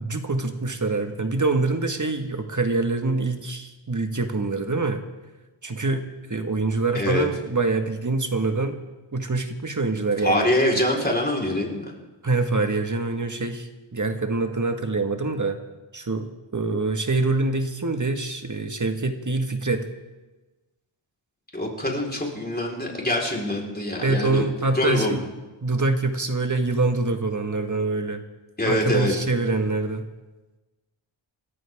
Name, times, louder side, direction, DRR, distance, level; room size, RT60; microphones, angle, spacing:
voice 1, 0.0-5.0 5.6-8.8 9.1-10.5 12.2-15.6 15.9-16.3 16.5-19.8 24.0-25.2 25.6-28.2 28.6-30.1, right 3 dB, 35° right, 6 dB, 1.8 m, -25 dB
voice 2, 6.9-7.3 10.2-11.9 21.5-24.4 24.7-25.2 28.6-29.1, left 1 dB, 20° left, -1 dB, 4.4 m, -24 dB
27.5 x 14.0 x 3.7 m, 1.1 s
wide cardioid pair, 75°, 50 cm